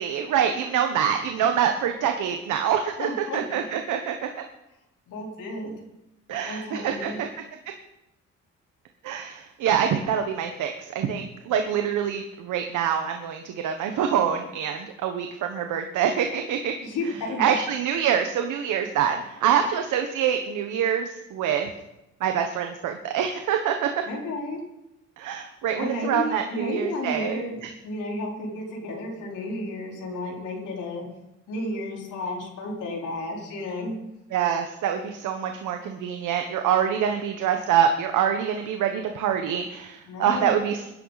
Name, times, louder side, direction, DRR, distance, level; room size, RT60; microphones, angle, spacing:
voice 1, 0.0-4.3 6.3-7.3 9.0-16.7 17.4-21.7 22.2-24.0 25.2-27.7 34.3-40.9, right 8 dB, 85° right, 5 dB, 1.3 m, -25 dB
voice 2, 3.0-3.4 5.1-5.7 6.5-7.2 16.8-17.5 24.0-24.6 25.7-31.0 31.5-33.9 40.1-40.5, left 1 dB, 85° left, -2 dB, 4.3 m, -32 dB
19.5 x 11.0 x 4.1 m, 0.89 s
cardioid pair, 90°, 30 cm